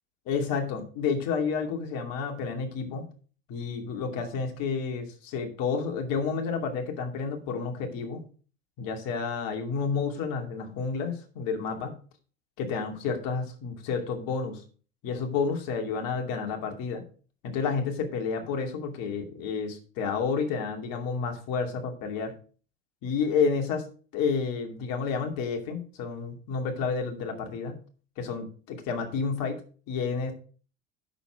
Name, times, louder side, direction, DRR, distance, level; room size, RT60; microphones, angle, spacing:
voice 1, 0.3-3.1 3.5-8.3 8.8-12.0 12.6-14.6 15.0-17.0 17.4-22.3 23.0-27.7 28.2-29.6 29.9-30.3, left 5 dB, 60° left, 3 dB, 2.7 m, -30 dB
9.0 x 6.9 x 4.9 m, 0.39 s
hypercardioid pair, 75°, 39 cm